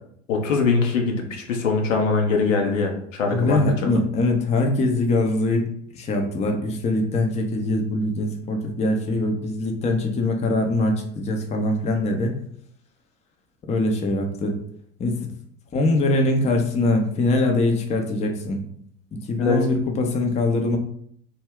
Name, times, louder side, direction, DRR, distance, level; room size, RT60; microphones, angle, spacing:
voice 1, 0.3-3.9 19.4-19.6, left 4 dB, 80° left, 2 dB, 0.6 m, -22 dB
voice 2, 3.3-12.4 13.7-14.6 15.0-15.3 15.7-18.6 19.3-20.8, left 2 dB, 20° left, 2 dB, 0.4 m, -22 dB
2.2 x 2.1 x 3.5 m, 0.66 s
hypercardioid pair, 75°, 38 cm